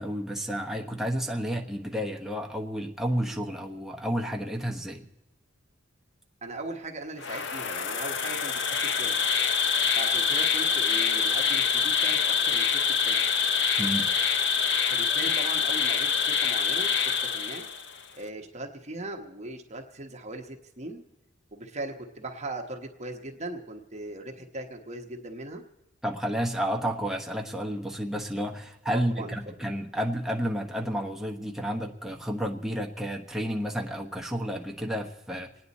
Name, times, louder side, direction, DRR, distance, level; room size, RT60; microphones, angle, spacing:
voice 1, 0.0-5.0 13.8-14.1 26.0-35.5, equal, ahead, 1 dB, 1.2 m, -31 dB
voice 2, 6.4-9.3 9.9-13.3 14.9-17.6 18.1-21.0 21.5-25.6 28.9-29.3, right 2 dB, 35° right, 3 dB, 1.2 m, -39 dB
Insect, 7.2-18.0, left 6 dB, 65° left, 0.9 m, -25 dB
27.5 x 9.7 x 4.1 m, 1.0 s
head